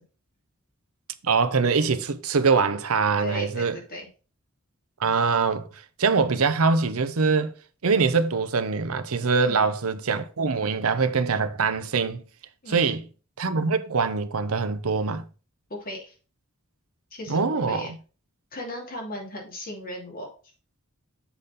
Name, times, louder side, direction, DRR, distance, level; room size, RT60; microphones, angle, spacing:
voice 1, 1.2-3.8 5.0-5.7 6.0-7.5 7.8-12.2 12.7-13.0 13.4-15.2 17.3-17.9, right 4 dB, 80° right, 0.7 m, -23 dB
voice 2, 3.2-4.1 9.4-9.7 12.6-13.0 15.7-16.1 17.1-17.9 18.5-20.3, left 1 dB, 45° left, 2.8 m, -37 dB
7.1 x 4.2 x 5.1 m
head